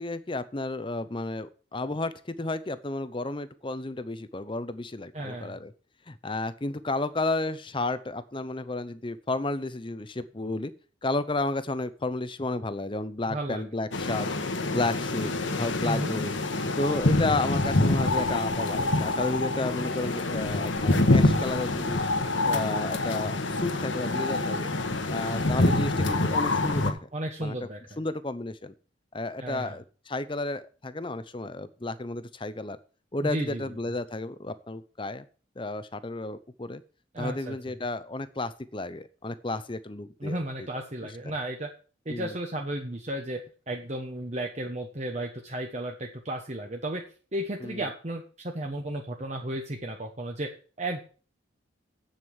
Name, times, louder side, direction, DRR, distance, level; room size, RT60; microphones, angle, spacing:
voice 1, 0.0-5.7 6.1-10.7 11.0-14.3 14.7-16.3 16.8-22.0 22.5-24.7 25.1-27.1 27.4-27.5 28.0-28.7 29.1-32.8 33.1-35.2 35.6-36.8 37.2-40.7 41.2-41.3 42.1-42.3 47.6-47.9, left 2 dB, 25° left, 14 dB, 0.7 m, -32 dB
voice 2, 5.1-5.6 13.3-13.6 15.8-16.2 27.1-27.8 29.4-29.8 33.2-33.7 37.1-37.6 40.2-41.7 42.0-47.0 47.3-51.0, right 1 dB, 35° right, 3 dB, 1.2 m, -34 dB
sound 1, 13.9-26.9, left 2 dB, 75° left, 1.5 m, -26 dB
8.3 x 7.8 x 7.2 m, 0.39 s
head